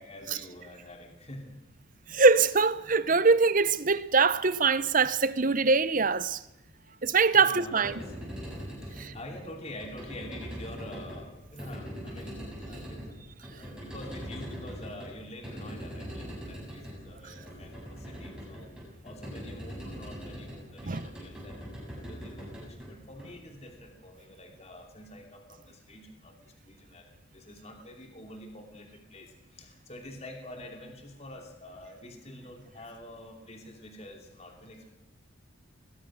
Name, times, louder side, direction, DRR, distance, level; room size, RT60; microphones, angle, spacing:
voice 1, 0.0-1.6 7.3-8.1 8.8-13.2 13.5-18.7 19.0-21.8 22.1-34.9, left 1 dB, 30° left, 2.8 m, -46 dB
voice 2, 2.1-6.4 7.0-7.9 9.0-9.1 20.9-21.0, right 4 dB, 40° right, 0.8 m, -23 dB
sound 1, 7.7-23.8, equal, 5° right, 7.3 m, -42 dB
20.5 x 20.0 x 6.4 m
head